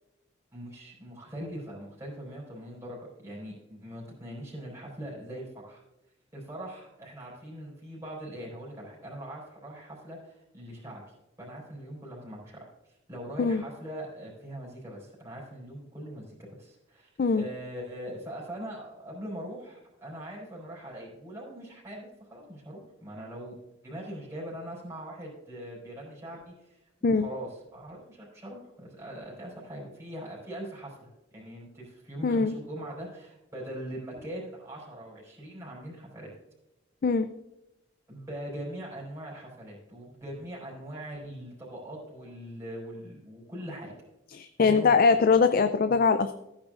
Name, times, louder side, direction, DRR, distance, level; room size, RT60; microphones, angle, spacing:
voice 1, 0.5-5.8 6.3-11.0 11.4-12.7 13.1-23.6 23.8-36.3 38.1-43.9 44.7-45.1, right 1 dB, 15° right, -5 dB, 4.1 m, -41 dB
voice 2, 32.2-32.5 37.0-37.3 44.3-46.3, left 4 dB, 50° left, 9 dB, 0.4 m, -22 dB
15.0 x 8.9 x 2.5 m, 0.91 s
head